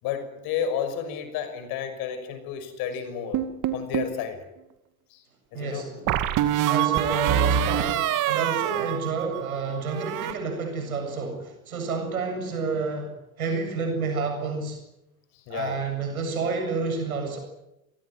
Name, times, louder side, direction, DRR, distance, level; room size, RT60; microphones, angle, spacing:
voice 1, 0.0-3.4 3.7-4.4 5.1-5.2 5.5-5.9 8.7-8.9 15.3-15.8, left 8 dB, 55° left, 10 dB, 6.2 m, -31 dB
sound 1, 3.3-4.2 6.1-9.6 9.9-10.3, right 10 dB, 45° right, 2.4 m, -25 dB
voice 2, 5.5-6.1 6.7-14.8 15.5-17.4, right 4 dB, 80° right, 4 dB, 7.8 m, -30 dB
28.5 x 19.0 x 9.5 m, 0.91 s
figure-of-eight pair, 70°, 43 cm